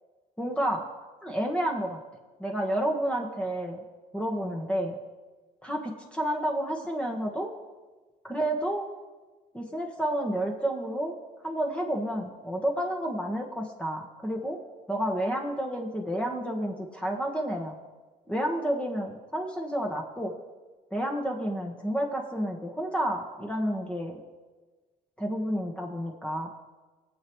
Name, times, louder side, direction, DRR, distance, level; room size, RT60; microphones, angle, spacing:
voice 1, 0.4-0.8 1.2-2.0 2.4-3.8 4.1-5.0 5.6-7.5 8.2-8.9 9.5-11.1 11.4-14.6 14.9-17.7 18.3-20.3 20.9-24.2 25.2-26.5, right 1 dB, 5° left, 0 dB, 1.5 m, -30 dB
20.0 x 7.8 x 3.1 m, 1.3 s
cardioid pair, 110°, 17 cm